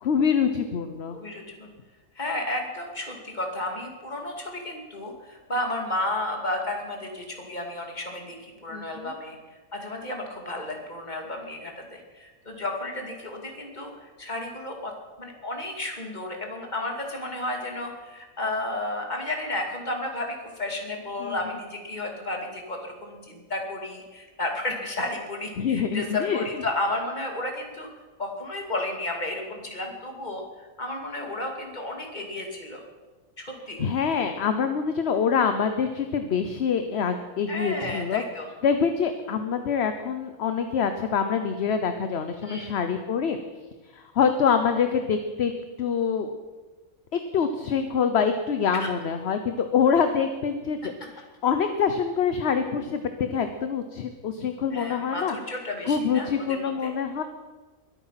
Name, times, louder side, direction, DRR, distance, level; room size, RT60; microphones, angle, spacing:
voice 1, 0.0-1.2 8.7-9.1 21.2-21.4 25.6-26.4 33.8-38.2 38.6-43.4 43.9-45.5 45.8-46.3 47.1-53.0 53.3-55.4 55.9-57.2, left 6 dB, 55° left, 8 dB, 1.0 m, -25 dB
voice 2, 1.1-1.7 2.1-14.9 15.2-27.9 28.2-32.8 33.4-33.8 37.5-38.5 42.4-42.8 48.7-48.9 50.8-50.9 54.7-56.9, left 2 dB, 30° left, 2 dB, 2.6 m, -32 dB
22.0 x 8.8 x 5.8 m, 1.3 s
omnidirectional pair, 1.4 m